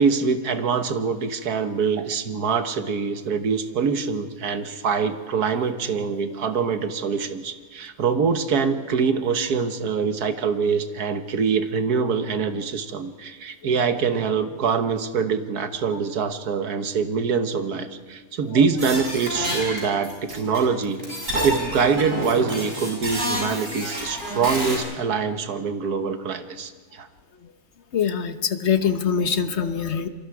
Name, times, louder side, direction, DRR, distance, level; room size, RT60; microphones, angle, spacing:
voice 1, 0.0-21.0 21.4-27.1, right 5 dB, 85° right, 8 dB, 1.7 m, -24 dB
sound 1, 18.8-20.6 20.8-24.8, equal, 55° right, 7.7 m, -28 dB
voice 2, 27.9-30.1, left 7 dB, 50° left, 9 dB, 1.3 m, -23 dB
28.0 x 23.5 x 4.8 m, 1.4 s
omnidirectional pair, 1.6 m